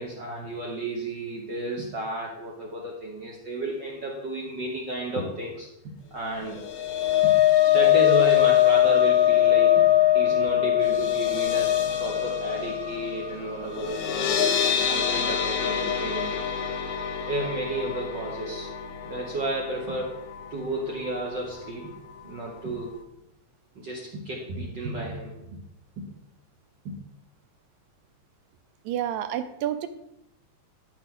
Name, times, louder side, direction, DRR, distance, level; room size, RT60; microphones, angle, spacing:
voice 1, 0.0-5.7 6.1-6.6 7.2-7.3 7.7-9.9 10.1-16.3 17.3-18.7 19.0-20.2 20.5-22.0 22.2-22.9 23.7-25.6 26.0-26.1 26.8-27.0, right 1 dB, 55° right, -2 dB, 1.2 m, -32 dB
sound 1, 6.5-20.7 21.0-21.3 21.6-21.7, left 11 dB, 70° left, 1.5 m, -23 dB
voice 2, 28.9-29.9, right 11 dB, 80° right, 10 dB, 1.9 m, -29 dB
13.0 x 5.1 x 3.8 m, 0.85 s
omnidirectional pair, 3.4 m